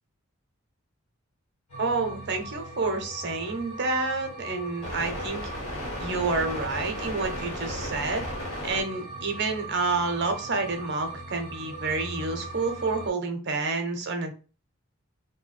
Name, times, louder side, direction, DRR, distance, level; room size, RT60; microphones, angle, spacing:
sound 1, 1.7-13.1, right 1 dB, 80° left, 1.6 m, -37 dB
voice 1, 1.8-5.4 6.0-8.2 8.6-14.3, right 3 dB, 55° right, 5 dB, 0.7 m, -29 dB
2.8 x 2.2 x 4.1 m, 0.35 s
head